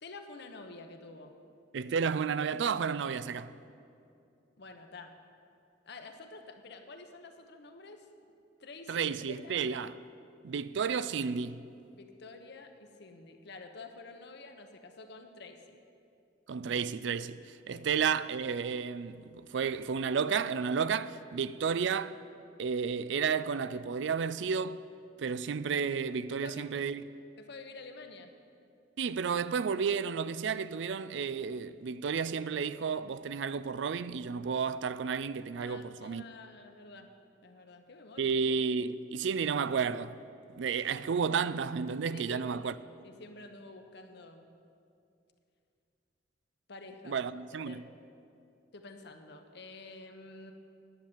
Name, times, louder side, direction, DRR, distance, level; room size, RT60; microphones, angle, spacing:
voice 1, 0.0-1.3 4.6-5.1 5.9-8.1 8.6-9.1 9.4-9.6 11.9-15.8 17.7-17.9 26.3-26.7 27.4-28.3 35.6-37.1 37.4-38.4 42.1-42.7 43.0-44.5 46.7-47.2 47.6-47.9 48.7-50.5, left 3 dB, 65° left, 1.0 m, -49 dB
voice 2, 1.7-3.5 8.9-9.9 10.4-11.6 16.5-17.4 17.7-22.1 22.6-24.8 25.2-27.0 29.0-36.2 38.2-40.2 40.6-42.7 47.1-47.8, right 6 dB, 70° right, 0.4 m, -32 dB
10.5 x 7.3 x 9.3 m
head